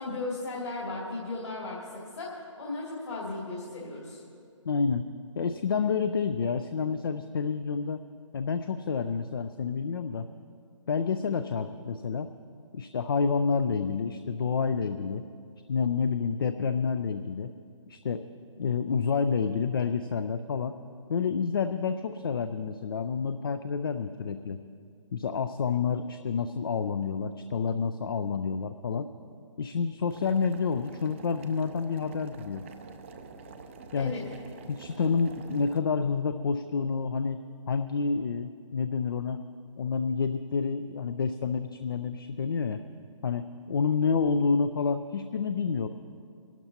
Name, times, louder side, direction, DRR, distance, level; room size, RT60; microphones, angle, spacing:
voice 1, 0.0-4.2 34.0-34.2, left 2 dB, 60° left, -5 dB, 2.8 m, -36 dB
voice 2, 4.7-8.0 8.3-10.3 10.9-12.3 12.7-15.2 15.7-17.5 17.9-18.3 18.6-20.8 21.1-24.6 25.1-29.1 29.6-32.7 33.9-34.1 34.7-37.4 37.7-39.4 39.8-42.8 43.2-45.9, left 5 dB, 45° left, 10 dB, 0.4 m, -29 dB
Boiling, 30.1-35.8, right 4 dB, 25° right, 0.5 m, -47 dB
25.5 x 12.0 x 2.8 m, 2.3 s
figure-of-eight pair, 140°, 16 cm